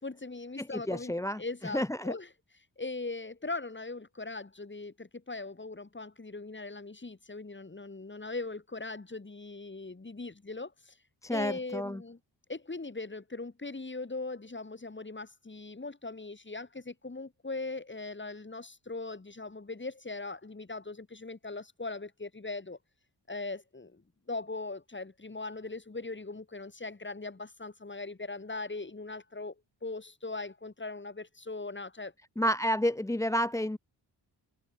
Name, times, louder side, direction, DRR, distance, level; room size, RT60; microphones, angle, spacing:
voice 1, 0.0-2.3 2.8-11.0 11.3-12.2 12.5-22.8 23.3-29.5 29.8-32.1 32.4-32.5, left 3 dB, 25° left, 3.3 m, -40 dB
voice 2, 0.6-1.4 1.7-2.1 11.2-12.0 32.4-33.8, equal, 5° left, 0.7 m, -30 dB
cardioid pair, 80°, 42 cm